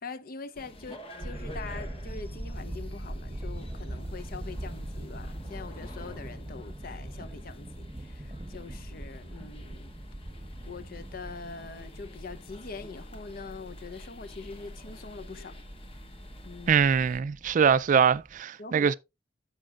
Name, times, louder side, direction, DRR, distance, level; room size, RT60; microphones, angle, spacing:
voice 1, 0.0-9.9 10.7-15.6 16.4-16.8 18.6-19.0, left 4 dB, 55° left, 0.7 m, -43 dB
sound 1, 0.5-17.2, left 1 dB, 30° left, 1.0 m, -48 dB
sound 2, 1.2-18.4, right 1 dB, 25° right, 0.8 m, -42 dB
voice 2, 16.7-18.9, right 7 dB, 45° right, 0.3 m, -23 dB
14.0 x 5.3 x 2.4 m
head